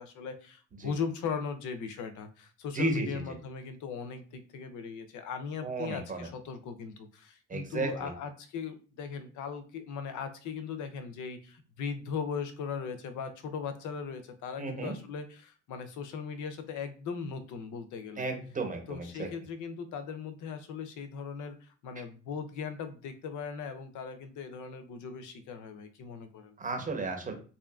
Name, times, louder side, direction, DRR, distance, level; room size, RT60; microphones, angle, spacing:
voice 1, 0.0-18.3 18.9-26.5, left 6 dB, 75° left, 9 dB, 0.5 m, -39 dB
voice 2, 2.7-3.4 5.6-6.3 7.5-8.1 14.6-14.9 18.2-19.3 26.6-27.3, right 2 dB, 25° right, 4 dB, 0.7 m, -33 dB
2.6 x 2.4 x 2.3 m, 0.38 s
cardioid pair, 90°, 30 cm